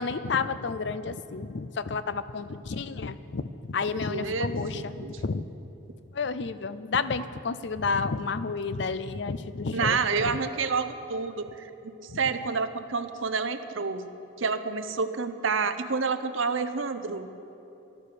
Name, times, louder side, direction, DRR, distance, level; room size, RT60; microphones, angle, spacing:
voice 1, 0.0-5.4 6.1-10.4 12.1-12.2, left 4 dB, 60° left, 13 dB, 0.5 m, -31 dB
voice 2, 4.1-5.1 9.7-14.1 14.4-17.3, right 5 dB, 80° right, 10 dB, 0.8 m, -29 dB
13.5 x 12.0 x 6.8 m, 3.0 s
head